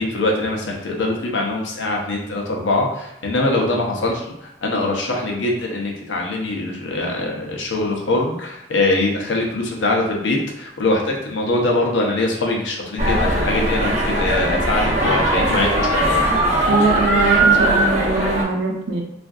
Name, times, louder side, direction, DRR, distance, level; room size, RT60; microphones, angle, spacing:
voice 1, 0.0-16.2, left 2 dB, 90° left, 0 dB, 0.6 m, -22 dB
sound 1, 13.0-18.4, right 1 dB, 40° right, 0.7 m, -19 dB
voice 2, 16.7-19.0, right 3 dB, 80° right, 1 dB, 0.6 m, -21 dB
3.4 x 2.5 x 2.3 m, 0.82 s
head